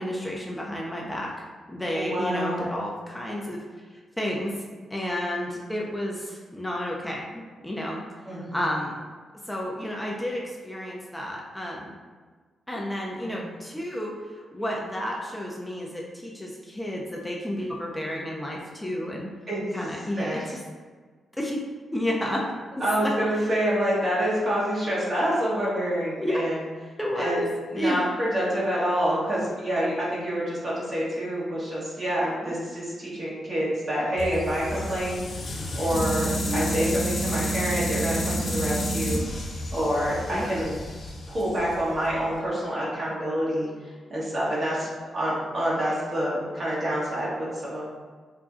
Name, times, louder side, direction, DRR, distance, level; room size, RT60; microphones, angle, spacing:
voice 1, 0.0-3.6 4.2-4.5 4.9-8.0 8.3-9.0 9.5-11.9 12.7-19.3 19.7-20.6 21.4-21.6 21.9-22.5 23.0-23.5 26.2-26.4 27.0-27.4 27.7-28.0 36.5-36.7 40.3-40.5, equal, 10° left, -2 dB, 0.6 m, -31 dB
voice 2, 1.9-2.8 8.2-8.6 13.2-13.4 19.5-19.6 20.2-20.5 22.8-26.6 27.2-27.4 27.7-35.4 35.8-39.2 39.7-40.8 41.3-47.8, equal, 50° right, -7 dB, 1.5 m, -27 dB
sound 1, 34.2-42.3, equal, 55° left, 1.1 m, -30 dB
4.8 x 2.2 x 2.6 m, 1.5 s
hypercardioid pair, 40°, 0 cm